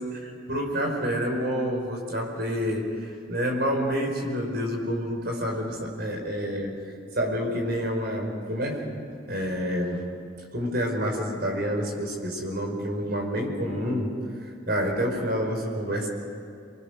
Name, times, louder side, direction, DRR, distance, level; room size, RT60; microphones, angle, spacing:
voice 1, 0.0-6.7 7.1-8.8 9.3-10.1 10.5-14.1 14.7-16.1, equal, 55° right, 1 dB, 5.2 m, -28 dB
27.5 x 23.5 x 6.6 m, 2.5 s
head